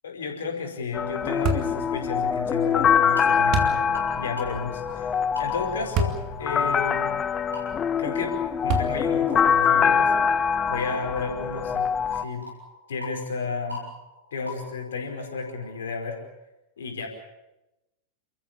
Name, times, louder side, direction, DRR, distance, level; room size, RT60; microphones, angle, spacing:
voice 1, 0.0-7.2 8.0-10.1 10.7-12.4 12.9-13.8 14.3-16.2 16.8-17.1, left 4 dB, 65° left, 4 dB, 5.1 m, -32 dB
sound 1, 0.9-12.2, left 7 dB, 25° left, 0.9 m, -24 dB
sound 2, 1.4-1.8 3.5-3.8 5.9-6.2 6.9-7.0 8.7-9.2, right 2 dB, 40° right, 2.9 m, -25 dB
sound 3, 2.8-16.2, left 2 dB, 80° right, 6.6 m, -43 dB
30.0 x 14.5 x 8.6 m, 0.95 s
figure-of-eight pair, 90°, 0 cm